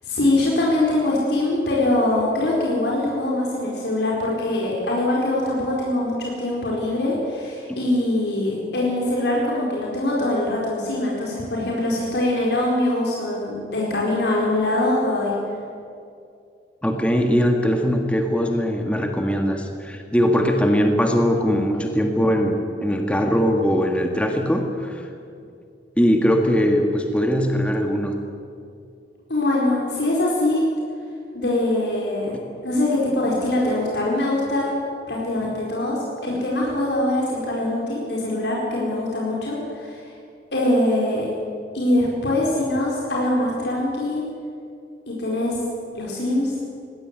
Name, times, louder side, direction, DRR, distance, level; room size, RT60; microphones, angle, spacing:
voice 1, 0.0-15.3 29.3-30.6 31.3-32.4 32.6-34.7 35.1-40.0 40.5-41.2 41.7-44.2 45.1-45.6 45.9-46.5, left 1 dB, 80° left, -4 dB, 4.4 m, -23 dB
voice 2, 16.8-25.1 26.0-28.1 35.4-35.5, equal, 5° left, 2 dB, 1.7 m, -21 dB
20.5 x 16.5 x 9.6 m, 2.5 s
head